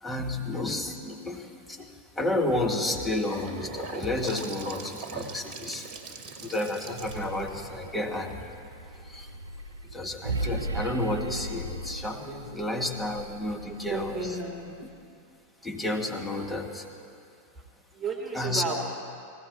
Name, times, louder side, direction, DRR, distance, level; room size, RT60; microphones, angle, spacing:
voice 1, 0.0-5.9 6.4-8.4 9.0-9.4 9.9-14.4 15.6-16.9 18.3-18.7, left 1 dB, 10° left, 1 dB, 1.7 m, -31 dB
Gurgling / Sink (filling or washing) / Bathtub (filling or washing), 2.9-9.0, right 4 dB, 40° right, 1.5 m, -42 dB
sound 1, 6.8-14.9, right 2 dB, 75° right, 0.5 m, -37 dB
voice 2, 13.9-14.8 17.9-18.7, right 4 dB, 20° right, 1 dB, 1.9 m, -33 dB
19.0 x 16.0 x 4.2 m, 2.4 s
figure-of-eight pair, 90°, 0 cm